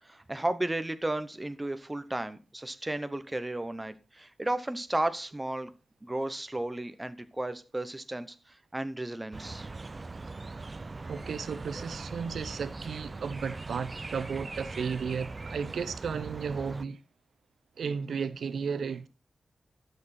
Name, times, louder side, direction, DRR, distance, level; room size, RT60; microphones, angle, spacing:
voice 1, 0.0-5.7 6.0-9.7, right 1 dB, 15° right, 0.8 m, -34 dB
sound 1, 9.3-16.9, right 3 dB, 30° right, 0.5 m, -41 dB
voice 2, 11.0-17.0 17.8-19.1, right 6 dB, 85° right, 0.8 m, -34 dB
12.5 x 6.9 x 4.3 m
wide cardioid pair, 110°, 0 cm